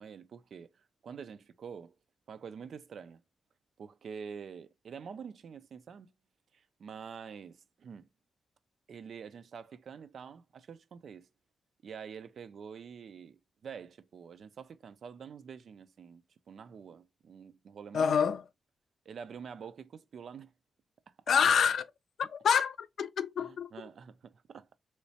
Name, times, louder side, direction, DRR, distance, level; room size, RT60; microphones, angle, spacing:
voice 1, 0.0-1.9 2.3-3.2 3.8-6.1 6.5-8.1 8.9-11.3 11.8-18.3 19.1-20.5 21.1-21.2 23.4-24.8, right 6 dB, 65° right, 0.4 m, -47 dB
voice 2, 17.9-18.4 21.3-21.9 22.2-23.7, left 7 dB, 75° left, 0.4 m, -27 dB
3.1 x 3.1 x 2.7 m
cardioid pair, 105°, 0 cm